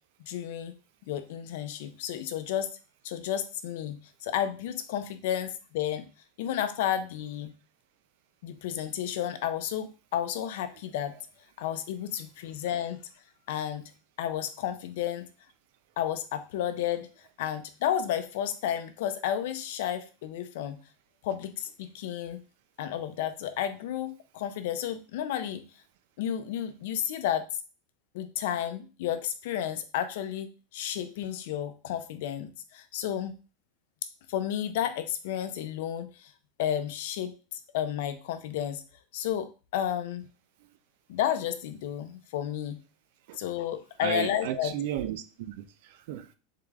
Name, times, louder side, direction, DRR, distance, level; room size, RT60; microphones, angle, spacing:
voice 1, 0.3-0.7 1.1-2.7 3.0-6.0 6.4-7.5 8.4-11.1 11.6-13.0 13.5-13.9 14.2-15.3 16.0-17.1 17.4-20.8 21.2-22.4 22.8-25.6 26.2-27.5 28.1-30.5 30.7-33.3 34.3-36.3 36.6-38.8 39.1-40.3 41.1-42.8 43.4-44.7, left 10 dB, 70° left, 0.6 m, -32 dB
voice 2, 44.0-46.4, right 11 dB, 65° right, 0.5 m, -34 dB
3.7 x 3.2 x 3.5 m
supercardioid pair, 150°, 0 cm